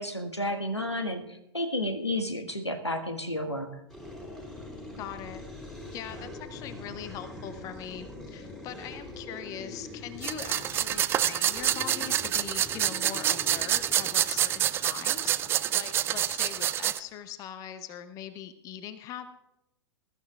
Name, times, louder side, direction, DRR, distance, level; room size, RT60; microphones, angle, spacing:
voice 1, 0.0-3.8, left 1 dB, 85° left, 6 dB, 1.7 m, -31 dB
sound 1, 3.9-16.8, left 2 dB, 5° left, 2.6 m, -44 dB
voice 2, 5.0-5.5 5.9-15.4 15.7-19.3, left 9 dB, 25° left, 12 dB, 0.8 m, -41 dB
sound 2, 10.2-17.0, right 11 dB, 15° right, 0.4 m, -27 dB
21.5 x 13.5 x 2.4 m, 0.87 s
figure-of-eight pair, 110°, 14 cm